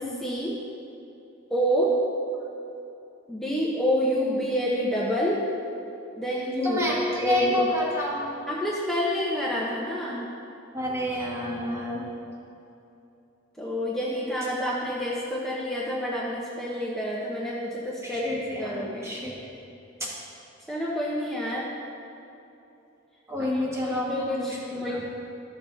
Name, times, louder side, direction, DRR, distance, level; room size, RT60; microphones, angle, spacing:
voice 1, 0.2-0.6 1.5-1.9 3.3-5.4 6.2-7.7 8.5-10.3 13.6-19.1 20.7-21.7 23.4-23.5 23.8-25.0, equal, ahead, -6 dB, 0.8 m, -28 dB
voice 2, 6.6-8.3 10.7-12.1 18.0-19.3 20.0-20.1 23.3-25.0, left 1 dB, 15° right, -5 dB, 1.4 m, -29 dB
13.5 x 6.8 x 2.7 m, 2.8 s
head